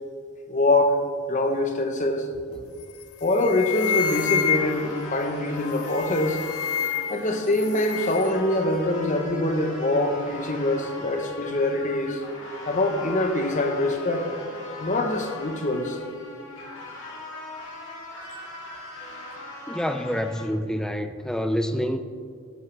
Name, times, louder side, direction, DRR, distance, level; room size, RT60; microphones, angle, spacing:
voice 1, 0.5-1.0 1.3-2.6 3.2-6.4 7.1-12.3 12.6-14.3 14.8-16.0, left 1 dB, 35° left, 5 dB, 1.0 m, -24 dB
sound 1, 2.8-3.0 3.3-5.0 5.8-7.3 7.5-8.3, left 9 dB, 80° left, 0.6 m, -28 dB
sound 2, 3.7-20.5, left 2 dB, 60° left, 2.6 m, -39 dB
voice 2, 19.7-22.0, equal, 5° left, 8 dB, 0.4 m, -27 dB
12.0 x 11.0 x 3.3 m, 2.2 s
head